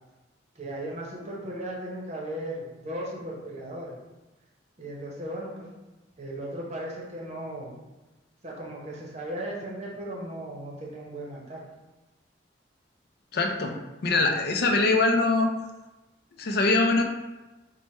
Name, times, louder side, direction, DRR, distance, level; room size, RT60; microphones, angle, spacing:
voice 1, 0.6-4.0 4.8-5.7 6.2-7.7 8.4-11.6, right 1 dB, 35° right, -3 dB, 0.8 m, -36 dB
voice 2, 13.3-13.8 14.0-15.5 16.4-17.0, left 3 dB, 55° left, 3 dB, 0.4 m, -23 dB
3.3 x 2.1 x 4.1 m, 1.1 s
head